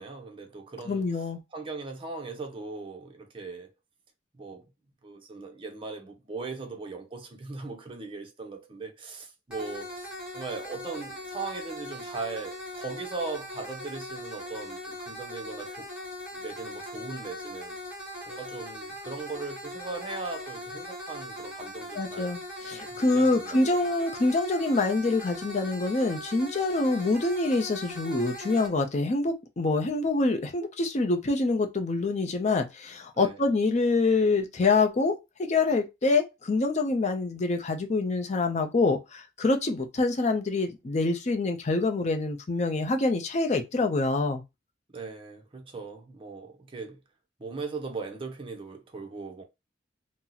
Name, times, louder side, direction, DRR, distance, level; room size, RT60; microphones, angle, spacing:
voice 1, 0.0-1.2 1.5-3.7 4.3-4.6 5.0-15.9 16.3-17.8 18.2-22.4 22.8-23.9 33.1-33.4 44.9-47.0 47.4-49.4, right 4 dB, 30° right, 0.6 m, -39 dB
voice 2, 0.9-1.4 21.9-35.1 35.4-44.4, left 3 dB, 40° left, 0.5 m, -26 dB
sound 1, 9.5-28.7, left 1 dB, 5° right, 1.4 m, -40 dB
2.8 x 2.0 x 3.8 m
head